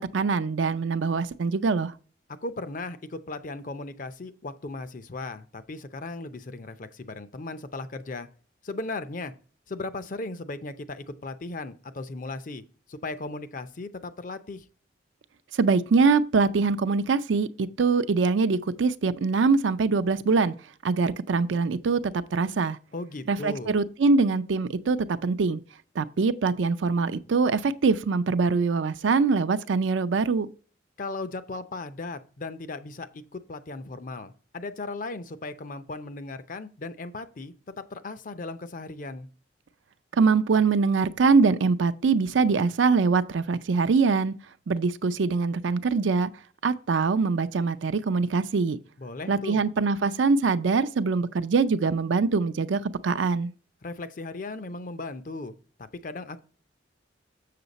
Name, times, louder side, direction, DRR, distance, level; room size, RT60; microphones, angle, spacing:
voice 1, 0.0-1.9 15.5-20.5 20.8-22.0 22.3-22.8 23.3-25.6 26.0-30.5 40.1-44.3 44.7-46.3 46.6-48.8 49.3-53.5, right 4 dB, 75° right, 0.4 m, -23 dB
voice 2, 2.3-8.3 8.6-9.3 9.7-12.6 12.9-14.6 22.9-23.7 31.0-39.3 49.0-49.6 53.8-55.5 55.8-56.4, left 3 dB, 45° left, 0.5 m, -37 dB
7.0 x 6.7 x 4.0 m
head